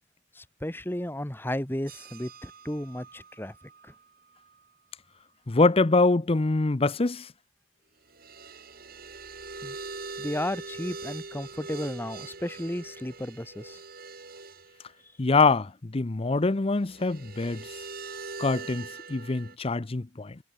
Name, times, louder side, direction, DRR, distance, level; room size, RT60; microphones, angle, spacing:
voice 1, 0.3-3.5 9.6-9.7 10.2-13.8, left 1 dB, 10° left, 1.6 m, -33 dB
sound 1, 1.9-4.0 4.4-4.5 8.1-14.9 16.8-19.6, right 4 dB, 50° right, 7.2 m, -42 dB
voice 2, 5.5-7.3 15.2-17.6 18.4-20.4, left 3 dB, 30° left, 0.6 m, -24 dB
head